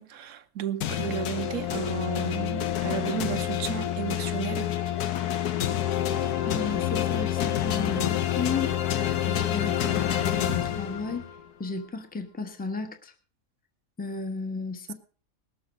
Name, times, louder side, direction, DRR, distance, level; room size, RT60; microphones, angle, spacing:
voice 1, 0.0-4.7, right 9 dB, 70° right, 1.3 m, -33 dB
sound 1, 0.8-11.4, left 11 dB, 80° left, 1.3 m, -28 dB
voice 2, 6.5-9.0 9.3-11.2 11.6-13.1 14.0-14.9, left 4 dB, 5° left, 1.2 m, -33 dB
19.5 x 7.1 x 5.1 m
omnidirectional pair, 1.6 m